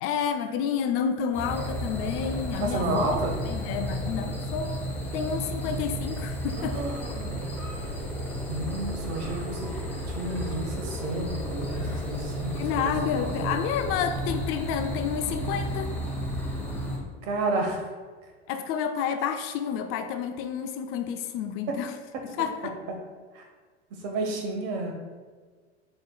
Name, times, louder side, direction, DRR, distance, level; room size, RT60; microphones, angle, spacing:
voice 1, 0.0-3.2 3.5-4.8 5.1-6.8 11.9-12.1 12.5-15.9 18.5-21.9 22.4-22.7, left 7 dB, 40° left, 7 dB, 0.4 m, -30 dB
sound 1, 1.3-17.0, equal, 5° left, 1.4 m, -33 dB
voice 2, 2.6-3.3 6.5-7.5 8.5-9.7 10.1-12.5 12.8-13.5 17.2-17.8 23.3-23.4 24.0-24.9, right 2 dB, 55° right, 2 dB, 1.1 m, -31 dB
4.4 x 4.3 x 2.3 m, 1.5 s
hypercardioid pair, 95°, 33 cm